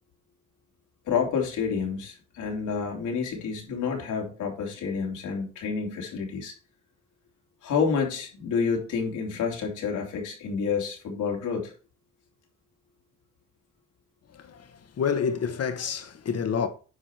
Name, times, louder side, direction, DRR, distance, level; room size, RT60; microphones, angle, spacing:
voice 1, 1.0-6.5 7.6-11.7, left 6 dB, 80° left, 3.1 m, -29 dB
voice 2, 14.3-16.7, left 6 dB, 55° left, 1.6 m, -29 dB
9.8 x 5.1 x 4.5 m
cardioid pair, 90°, 30 cm